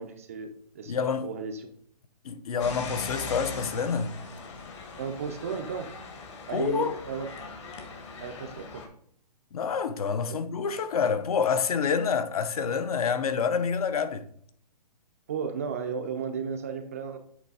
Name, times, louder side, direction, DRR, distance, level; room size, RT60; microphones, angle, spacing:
voice 1, 0.0-1.0 1.2-1.7 5.0-5.9 6.5-7.3 8.2-8.9 15.3-17.2, right 6 dB, 20° right, 0.4 m, -34 dB
voice 2, 0.9-1.3 2.2-4.1 6.5-7.0 9.5-14.3, left 6 dB, 60° left, 0.7 m, -27 dB
sound 1, 2.6-8.9, left 4 dB, 45° left, 1.3 m, -40 dB
8.2 x 3.2 x 4.7 m
hypercardioid pair, 165°, 21 cm